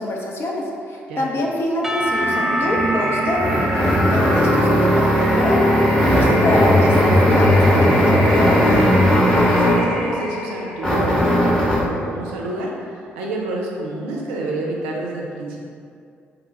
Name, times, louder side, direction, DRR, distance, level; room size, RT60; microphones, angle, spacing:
voice 1, 0.0-3.4 3.8-5.6 6.1-8.8, left 1 dB, 40° left, -2 dB, 0.5 m, -25 dB
Percussion / Church bell, 1.8-5.8, right 2 dB, 5° right, 0.3 m, -27 dB
sound 1, 2.0-11.0, equal, 85° left, 1.0 m, -25 dB
sound 2, 2.7-9.9 10.8-11.9, equal, 10° left, 0.8 m, -17 dB
voice 2, 9.5-15.6, right 2 dB, 75° right, -2 dB, 0.4 m, -29 dB
3.5 x 2.2 x 3.3 m, 2.3 s
figure-of-eight pair, 40°, 6 cm